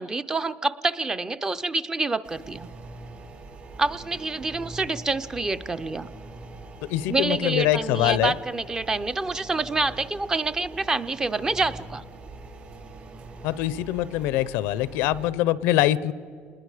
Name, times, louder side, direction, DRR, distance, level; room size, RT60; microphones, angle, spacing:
voice 1, 0.0-2.7 3.8-6.1 7.1-12.0, right 3 dB, 15° right, 13 dB, 0.5 m, -27 dB
sound 1, 2.2-15.3, right 3 dB, 50° right, 5.7 m, -43 dB
voice 2, 6.8-8.4 13.4-16.1, left 14 dB, 90° left, 19 dB, 0.6 m, -24 dB
27.0 x 20.5 x 4.9 m, 2.3 s
cardioid pair, 130°, 4 cm